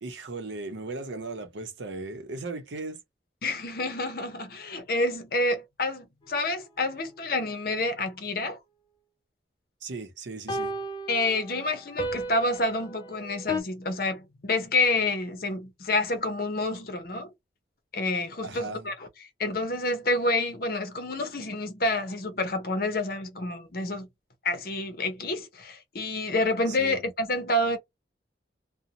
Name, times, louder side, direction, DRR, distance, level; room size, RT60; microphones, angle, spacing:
voice 1, 0.0-3.0 9.8-10.7 18.4-18.9 26.7-27.0, right 3 dB, 85° right, 0.7 m, -37 dB
voice 2, 3.4-8.6 11.1-17.3 17.9-19.1 19.4-24.1 24.4-27.8, left 2 dB, 55° left, 0.7 m, -28 dB
sound 1, 6.2-6.3 10.5-13.6, equal, 25° left, 0.4 m, -34 dB
2.5 x 2.1 x 2.8 m
head